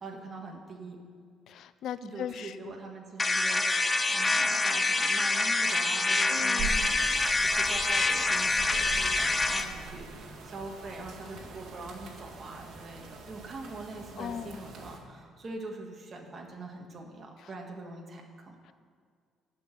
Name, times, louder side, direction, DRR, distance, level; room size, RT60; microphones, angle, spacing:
voice 1, 0.0-1.0 2.0-18.6, right 3 dB, 30° right, 1 dB, 1.6 m, -43 dB
voice 2, 1.5-2.8 6.3-7.0 14.2-14.6 18.7-18.8, left 9 dB, 60° left, 14 dB, 0.4 m, -39 dB
sound 1, 3.2-9.7, left 3 dB, 15° left, 0.6 m, -26 dB
sound 2, 6.6-15.0, right 4 dB, 60° right, 1.9 m, -42 dB
11.0 x 6.3 x 9.0 m, 2.1 s
cardioid pair, 150°, 0 cm